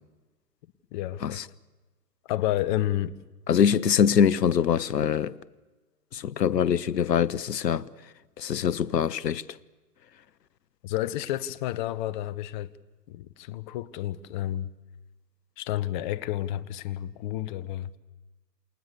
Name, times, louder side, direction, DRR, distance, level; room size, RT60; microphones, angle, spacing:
voice 1, 0.9-1.4 2.2-3.1 10.8-12.7 13.1-14.7 15.6-18.0, left 13 dB, 30° left, 1.1 m, -30 dB
voice 2, 3.5-5.3 6.1-7.9 8.4-9.4, left 8 dB, 80° left, 1.1 m, -23 dB
28.0 x 28.0 x 6.9 m
hypercardioid pair, 135°, 49 cm